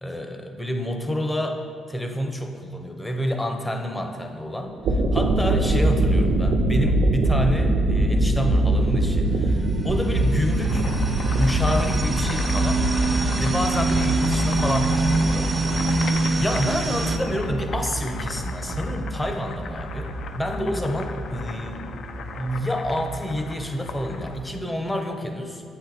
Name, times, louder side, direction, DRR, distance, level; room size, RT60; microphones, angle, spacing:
voice 1, 0.0-10.9 11.3-21.9 22.4-25.6, equal, 10° left, 4 dB, 0.6 m, -28 dB
sound 1, 4.7-24.3, right 1 dB, 75° right, 0.5 m, -24 dB
sound 2, 8.7-17.2, right 3 dB, 30° right, 0.5 m, -26 dB
Boiling, 10.4-24.5, left 5 dB, 65° left, 0.4 m, -38 dB
7.9 x 4.3 x 3.9 m, 2.2 s
cardioid pair, 90°, 0 cm